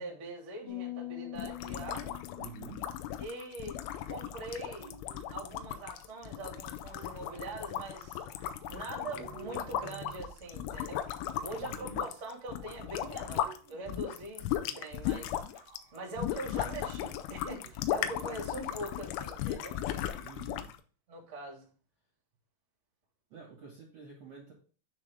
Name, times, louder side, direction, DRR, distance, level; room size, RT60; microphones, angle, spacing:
voice 1, 0.0-2.2 3.2-3.8 4.0-4.9 5.3-8.2 8.7-11.1 11.4-15.3 15.9-19.8 21.1-21.7, right 2 dB, 45° right, -3 dB, 0.9 m, -43 dB
sound 1, 0.7-4.1, left 16 dB, 70° left, 1.8 m, -44 dB
sound 2, 1.4-13.6 13.9-20.8, left 11 dB, 85° left, 3.0 m, -37 dB
voice 2, 2.3-2.8 11.6-12.1 20.2-20.7 23.3-24.5, right 6 dB, 65° right, -2 dB, 1.6 m, -48 dB
sound 3, 4.7-14.0 14.4-15.2 15.5-16.8 17.0-18.7 19.8-20.6, right 8 dB, 80° right, 2.0 m, -56 dB
9.8 x 3.6 x 3.4 m, 0.39 s
omnidirectional pair, 5.4 m